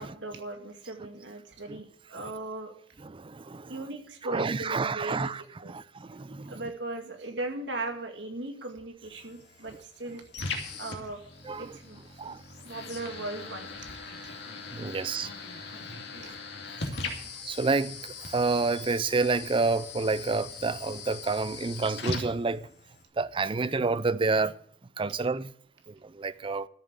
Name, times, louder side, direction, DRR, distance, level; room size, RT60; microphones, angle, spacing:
voice 1, 0.0-2.7 3.7-5.3 5.6-5.7 6.5-10.5 10.8-11.2 11.6-12.3 12.6-13.9 16.1-16.4, right 2 dB, 65° right, 2.1 m, -38 dB
voice 2, 3.0-3.8 4.2-6.6 11.4-11.7 12.2-12.4 14.7-15.3 16.7-22.7 23.2-24.6 25.0-25.5 25.9-26.7, right 3 dB, 30° right, 0.5 m, -29 dB
sound 1, 9.0-23.0, left 4 dB, 60° left, 2.5 m, -40 dB
13.0 x 7.2 x 8.1 m
head